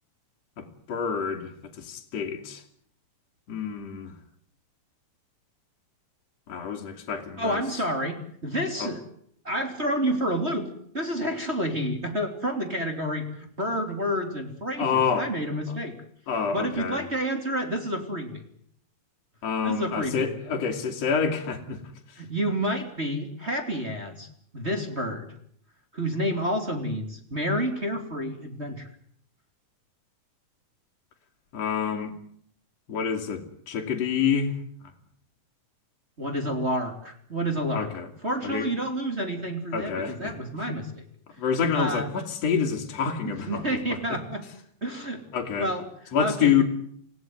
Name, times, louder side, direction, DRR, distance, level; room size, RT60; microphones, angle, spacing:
voice 1, 0.6-2.6 3.5-4.1 6.5-7.6 8.8-8.9 14.8-15.3 15.7-15.8 16.3-17.1 19.4-21.8 31.5-32.1 32.9-34.5 37.7-38.1 38.4-38.7 39.7-40.3 41.4-44.2 45.3-45.7 46.1-46.6, left 7 dB, 50° left, 2 dB, 3.5 m, -27 dB
voice 2, 7.4-9.0 9.4-10.7 10.9-16.0 16.5-18.4 19.6-20.3 22.2-24.3 24.5-25.3 25.9-28.9 36.2-37.9 38.2-40.9 41.7-42.1 43.2-44.5 44.8-45.2 45.6-46.6, equal, 20° right, 3 dB, 3.0 m, -29 dB
28.0 x 17.0 x 9.4 m, 0.66 s
omnidirectional pair, 3.8 m